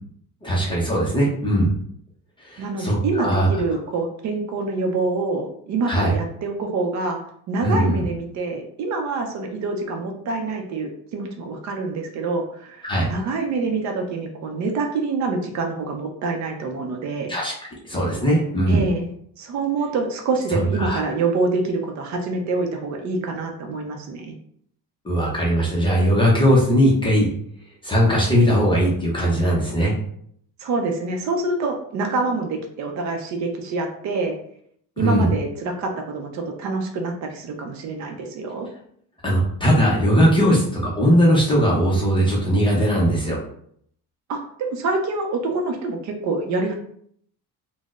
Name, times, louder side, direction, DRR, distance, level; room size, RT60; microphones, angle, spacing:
voice 1, 0.4-1.7 2.5-3.5 5.8-6.1 7.6-8.0 12.8-13.1 17.3-17.5 17.8-18.8 20.5-21.0 25.0-27.3 27.8-30.0 35.0-35.3 39.2-43.4, equal, 15° left, -4 dB, 0.4 m, -19 dB
voice 2, 2.6-7.2 7.5-17.4 18.7-19.1 19.4-24.3 30.6-34.4 35.0-38.7 44.3-46.7, right 3 dB, 50° right, 4 dB, 0.5 m, -26 dB
4.0 x 2.0 x 2.3 m, 0.66 s
cardioid pair, 165°, 37 cm